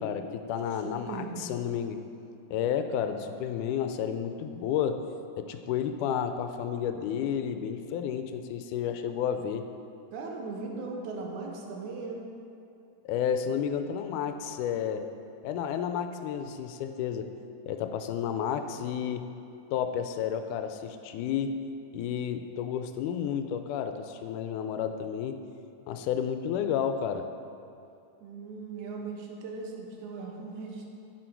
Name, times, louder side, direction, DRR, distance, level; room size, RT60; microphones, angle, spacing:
voice 1, 0.0-2.0 2.5-5.0 5.4-9.7 13.1-15.1 15.4-17.3 17.7-19.3 19.7-21.5 21.9-25.4 25.9-27.3, left 8 dB, 85° left, 8 dB, 2.1 m, -31 dB
voice 2, 0.7-1.5 10.1-12.3 28.2-30.9, right 4 dB, 80° right, 0 dB, 2.4 m, -38 dB
10.5 x 6.7 x 4.5 m, 2.6 s
omnidirectional pair, 3.5 m